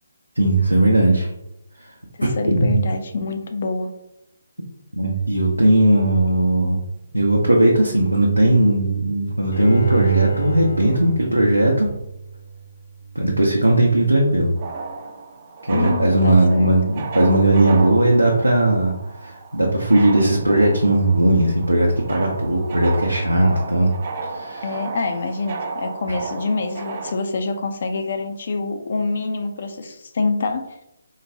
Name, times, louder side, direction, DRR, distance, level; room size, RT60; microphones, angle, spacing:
voice 1, 0.4-1.3 2.2-2.7 4.9-6.8 7.1-11.9 13.1-14.5 15.7-18.9 19.2-23.9 24.3-24.7, right 1 dB, 85° right, -2 dB, 0.6 m, -17 dB
voice 2, 2.2-3.9 15.7-16.7 24.6-30.8, left 3 dB, 45° left, 5 dB, 0.4 m, -26 dB
Bowed string instrument, 9.5-12.6 13.0-13.1, right 4 dB, 65° left, 1.4 m, -25 dB
sound 1, 14.6-27.1, right 4 dB, 35° right, 0.4 m, -34 dB
3.8 x 2.2 x 2.7 m, 0.84 s
figure-of-eight pair, 145°, 0 cm